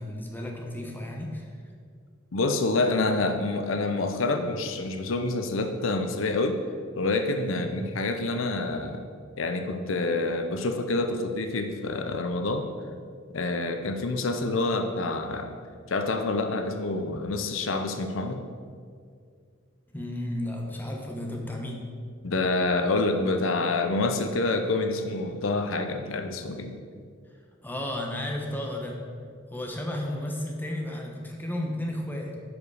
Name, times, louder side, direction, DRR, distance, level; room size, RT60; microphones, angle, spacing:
voice 1, 0.0-1.6 7.5-7.8 19.9-21.8 27.6-29.0 29.5-32.4, left 1 dB, 10° left, 0 dB, 1.1 m, -33 dB
voice 2, 2.3-6.6 7.0-9.0 9.4-12.7 13.3-15.6 15.9-18.4 22.2-26.8, left 2 dB, 80° left, 6 dB, 0.7 m, -27 dB
10.5 x 5.0 x 4.8 m, 2.1 s
head